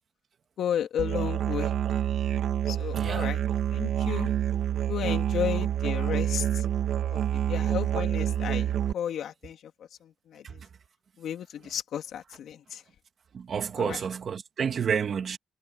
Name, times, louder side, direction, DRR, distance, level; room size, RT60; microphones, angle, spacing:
voice 1, 0.6-1.7 2.7-3.4 3.7-4.3 4.9-6.6 7.1-9.7 10.0-10.6 11.2-12.8 13.8-14.0, left 9 dB, 75° left, 3.1 m, -33 dB
Musical instrument, 1.0-8.9, right 10 dB, 75° right, 2.3 m, -27 dB
voice 2, 2.9-3.3 13.3-15.4, right 7 dB, 50° right, 3.1 m, -30 dB
cardioid pair, 135°, 0 cm